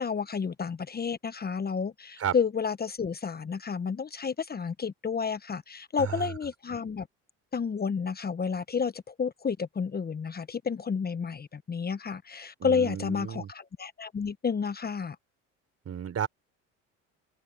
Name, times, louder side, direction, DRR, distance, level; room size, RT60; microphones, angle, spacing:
voice 1, 0.0-7.1 7.5-15.2, left 6 dB, 25° left, 1.1 m, -31 dB
voice 2, 6.0-6.3 12.6-13.5 15.9-16.3, right 8 dB, 40° right, 4.1 m, -33 dB
supercardioid pair, 80°, 37 cm